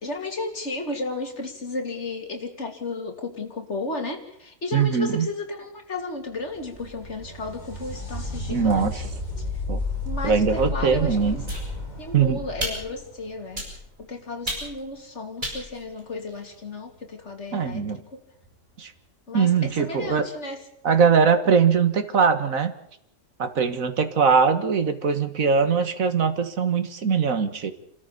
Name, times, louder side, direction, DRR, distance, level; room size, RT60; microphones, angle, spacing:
voice 1, 0.0-9.1 9.4-9.5 10.0-11.5 12.0-13.6 14.0-17.8 18.1-18.2 19.3-20.6, left 2 dB, 45° left, 4 dB, 2.9 m, -33 dB
voice 2, 4.7-5.3 8.5-8.9 9.7-9.8 10.2-11.4 12.1-12.4 17.5-18.0 18.8-18.9 19.3-20.3 20.8-22.7 23.4-27.7, right 6 dB, 55° right, 9 dB, 1.9 m, -21 dB
sound 1, 6.3-13.9 17.3-17.4 18.4-18.5, left 2 dB, 25° left, 4.1 m, -33 dB
sound 2, 11.5-12.1 12.6-13.1 13.6-14.0 14.5-14.9 15.4-16.6, equal, 25° right, 6.7 m, -33 dB
28.5 x 13.5 x 7.0 m, 0.73 s
omnidirectional pair, 1.7 m